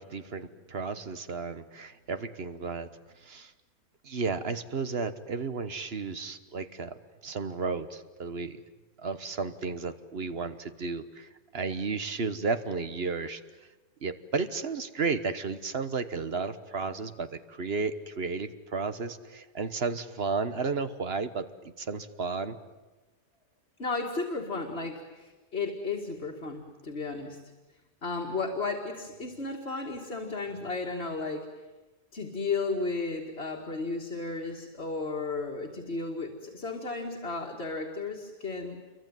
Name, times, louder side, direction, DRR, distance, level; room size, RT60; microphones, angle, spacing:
voice 1, 0.0-2.9 3.2-3.5 4.0-7.0 7.2-8.6 9.0-13.4 14.0-22.6, right 4 dB, 70° right, 11 dB, 1.5 m, -33 dB
voice 2, 23.8-27.4 28.0-31.5 32.1-38.8, left 3 dB, 80° left, 0 dB, 2.6 m, -34 dB
28.0 x 23.5 x 9.2 m, 1.2 s
omnidirectional pair, 1.1 m